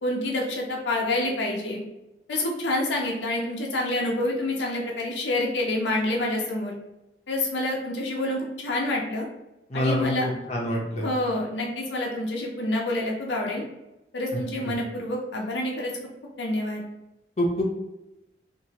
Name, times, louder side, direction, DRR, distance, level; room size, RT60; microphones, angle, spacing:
voice 1, 0.0-1.8 2.3-6.8 7.3-9.3 9.7-10.3 11.0-13.6 14.1-15.9 16.4-16.8, left 1 dB, 80° left, -1 dB, 0.6 m, -27 dB
voice 2, 9.7-11.1 14.3-14.4 17.4-17.6, equal, 40° left, -2 dB, 0.7 m, -26 dB
2.8 x 2.5 x 2.8 m, 0.94 s
head